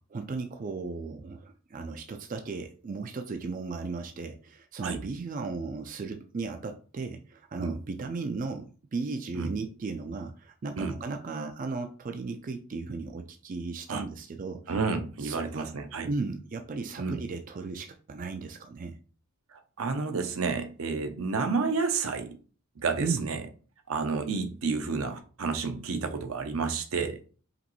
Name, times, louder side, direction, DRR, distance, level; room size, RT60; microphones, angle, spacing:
voice 1, 0.1-14.8 15.2-15.7 16.1-19.0 23.0-23.3, right 4 dB, 40° right, 0.4 m, -36 dB
voice 2, 14.7-16.1 17.0-17.2 19.8-22.4 22.8-23.4 23.9-27.2, right 4 dB, 75° right, 0.7 m, -30 dB
5.1 x 3.0 x 3.1 m
head